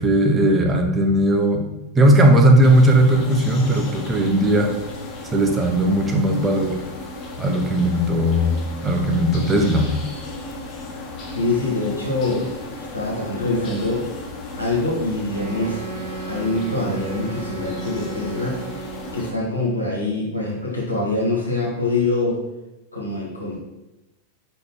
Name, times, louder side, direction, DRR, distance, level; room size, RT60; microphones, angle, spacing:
voice 1, 0.0-1.6 1.9-4.7 5.3-6.8 7.4-8.6 8.8-9.9, right 1 dB, 15° right, 2 dB, 1.0 m, -17 dB
sound 1, 2.6-19.3, left 2 dB, 35° left, 1.2 m, -35 dB
voice 2, 11.3-14.1 14.6-15.8 16.3-18.6 19.1-22.4 22.9-23.6, left 2 dB, 85° left, -4 dB, 1.7 m, -24 dB
Wind instrument woodwind instrument, 15.3-19.4, right 5 dB, 65° right, 1.3 m, -35 dB
5.4 x 4.1 x 4.6 m, 0.99 s
figure-of-eight pair, 90°, 0 cm